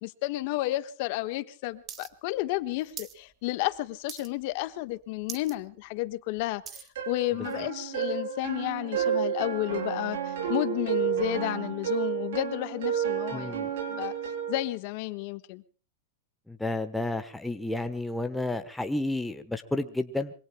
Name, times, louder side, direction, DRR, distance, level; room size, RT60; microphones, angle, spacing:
voice 1, 0.0-14.1 14.5-15.6, left 17 dB, 45° left, 12 dB, 1.3 m, -32 dB
sound 1, 1.9-2.1 2.4-3.2 3.5-3.8 4.1-4.5 4.9-5.0 5.2-5.6 6.0-6.9 7.6-7.7, right 8 dB, 20° right, 1.5 m, -42 dB
sound 2, 7.0-14.6, right 8 dB, 75° right, 5.8 m, -31 dB
voice 2, 13.3-13.7 16.5-20.3, left 2 dB, 5° left, 7 dB, 1.1 m, -31 dB
26.5 x 24.0 x 2.2 m, 0.37 s
supercardioid pair, 160°, 0 cm